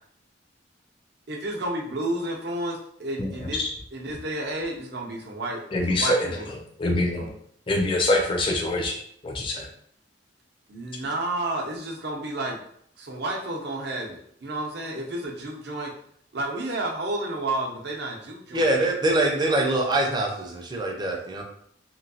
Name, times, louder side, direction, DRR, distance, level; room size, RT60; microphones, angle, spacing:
voice 1, 1.3-3.6 3.9-5.6 5.9-6.5 7.2-7.3 10.7-12.6 13.0-15.9 16.3-18.6, right 1 dB, 60° right, 0 dB, 0.7 m, -31 dB
voice 2, 3.2-3.7 5.7-6.3 6.8-7.3 7.7-8.9 9.2-9.7, left 1 dB, 30° left, 0 dB, 0.4 m, -24 dB
voice 3, 18.5-21.4, right 1 dB, 25° right, 0 dB, 0.5 m, -24 dB
3.0 x 2.6 x 2.7 m, 0.66 s
head